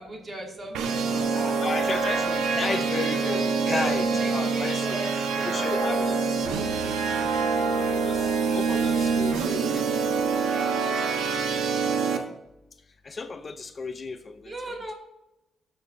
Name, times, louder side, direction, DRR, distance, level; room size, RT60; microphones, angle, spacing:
voice 1, 0.0-1.6 2.1-2.3 2.9-5.7 8.0-9.1 10.5-11.3 14.4-14.9, right 1 dB, 30° right, 0 dB, 2.6 m, -38 dB
sound 1, 0.7-12.2, right 5 dB, 85° right, 1.2 m, -25 dB
voice 2, 1.6-4.9 5.4-6.2 6.4-6.5 7.6-9.8 13.0-14.9, left 4 dB, 35° left, 8 dB, 0.7 m, -34 dB
13.0 x 6.3 x 2.7 m, 0.89 s
cardioid pair, 90°, 0 cm